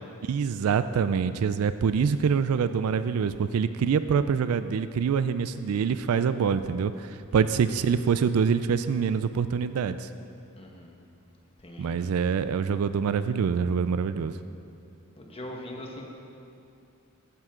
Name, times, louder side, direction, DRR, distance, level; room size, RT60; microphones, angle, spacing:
voice 1, 0.3-10.1 11.8-14.3, right 6 dB, 90° right, 12 dB, 0.4 m, -25 dB
voice 2, 10.6-11.0 11.6-12.0 15.2-16.1, left 1 dB, 25° left, 0 dB, 1.3 m, -41 dB
14.0 x 9.3 x 3.7 m, 2.6 s
head